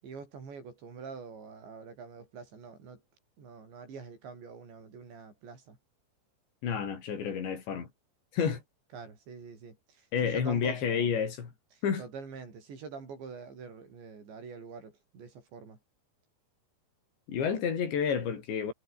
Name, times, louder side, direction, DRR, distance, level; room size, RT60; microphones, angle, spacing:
voice 1, 0.0-3.0 3.4-5.8 8.9-11.1 11.8-15.8, right 5 dB, 80° right, 8.9 m, -46 dB
voice 2, 6.6-7.9 8.3-8.6 10.1-11.5 11.8-12.0 17.3-18.7, left 7 dB, 80° left, 6.6 m, -30 dB
omnidirectional pair, 5.0 m